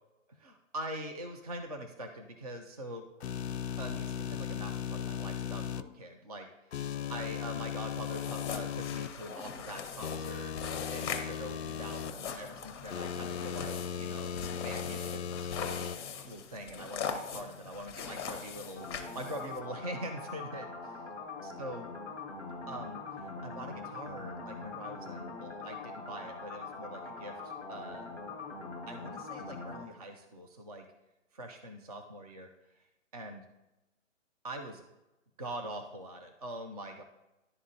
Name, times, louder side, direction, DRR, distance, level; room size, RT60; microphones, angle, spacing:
voice 1, 0.3-3.0 3.8-6.7 7.1-10.5 10.9-18.9 19.1-21.2 21.4-21.9 22.7-28.1 28.9-30.8 31.3-32.8 33.1-33.4 34.4-34.8 35.4-37.0, right 1 dB, 30° right, 5 dB, 0.4 m, -43 dB
sound 1, 3.2-5.8 6.7-9.1 10.0-12.1 12.9-16.0, left 8 dB, 60° left, 0.5 m, -37 dB
sound 2, 7.9-19.6, left 6 dB, 20° left, 0.7 m, -41 dB
sound 3, 18.8-29.9, left 3 dB, 10° right, 1.0 m, -43 dB
11.0 x 3.6 x 2.7 m, 1.0 s
hypercardioid pair, 155°, 38 cm